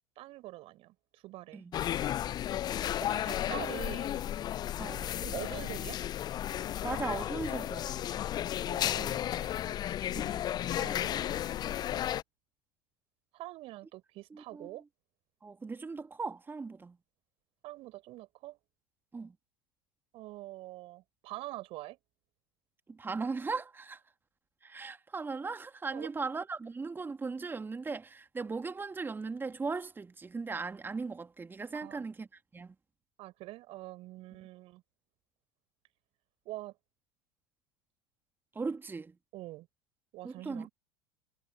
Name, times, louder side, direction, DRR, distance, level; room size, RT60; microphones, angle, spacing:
voice 1, 0.2-1.6 3.0-4.2 5.2-6.0 8.7-9.5 10.0-12.0 13.3-14.8 17.6-18.6 20.1-22.0 25.9-26.1 31.7-32.0 33.2-34.8 36.5-36.7 39.3-39.7 40.1-40.7, right 18 dB, 45° right, 5.4 m, -45 dB
sound 1, 1.7-12.2, left 11 dB, 30° left, 0.6 m, -33 dB
voice 2, 4.8-5.1 6.8-7.9 10.1-10.4 14.3-14.8 15.4-17.0 19.1-19.4 22.9-24.0 24.6-32.7 38.5-39.2 40.2-40.7, right 4 dB, 15° right, 2.5 m, -38 dB
figure-of-eight pair, 75°, 13 cm